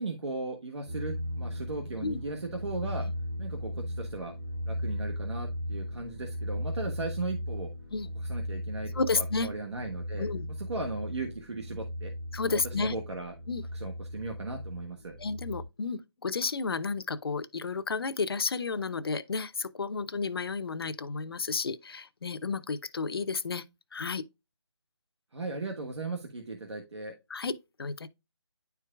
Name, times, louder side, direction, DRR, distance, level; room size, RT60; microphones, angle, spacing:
voice 1, 0.0-3.1 3.4-4.3 4.7-7.7 8.2-10.3 10.6-12.1 12.5-13.3 13.7-15.1 25.3-27.1, right 3 dB, 70° right, 1.5 m, -37 dB
sound 1, 0.9-15.6, left 1 dB, 10° right, 0.9 m, -37 dB
voice 2, 8.9-9.5 10.2-10.5 12.3-12.9 13.5-13.6 15.2-23.6 23.9-24.3 27.3-27.5 27.8-28.1, left 4 dB, 55° left, 0.6 m, -32 dB
10.0 x 4.6 x 2.3 m
figure-of-eight pair, 170°, 15 cm